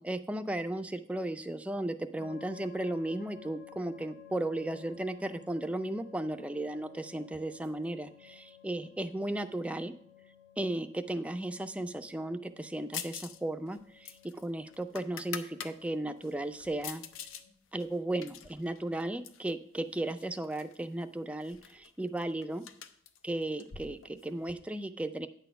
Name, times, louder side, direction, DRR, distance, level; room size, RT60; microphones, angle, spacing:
voice 1, 0.0-9.9 10.6-17.0 17.7-22.6 23.2-25.3, right 1 dB, 5° right, 9 dB, 0.3 m, -35 dB
sound 1, 2.2-17.5, left 8 dB, 70° left, 2.1 m, -56 dB
sound 2, 12.9-13.4 13.7-15.7 16.2-17.4 17.8-19.5 20.2-20.8 21.0-21.1 21.4-24.5, left 8 dB, 85° left, 0.6 m, -44 dB
8.9 x 4.2 x 6.6 m, 0.66 s
head